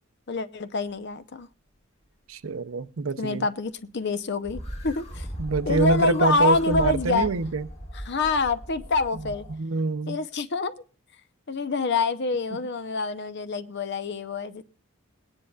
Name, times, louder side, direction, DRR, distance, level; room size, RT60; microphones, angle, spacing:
voice 1, 0.3-1.5 3.2-5.3 5.6-7.3 7.9-9.5 10.1-10.8 11.5-14.6, left 3 dB, 50° left, 0.7 m, -26 dB
voice 2, 2.3-3.5 5.4-7.7 9.5-10.2, right 3 dB, 70° right, 0.6 m, -25 dB
sound 1, 4.4-9.6, equal, 30° left, 1.9 m, -38 dB
21.5 x 9.9 x 2.3 m
head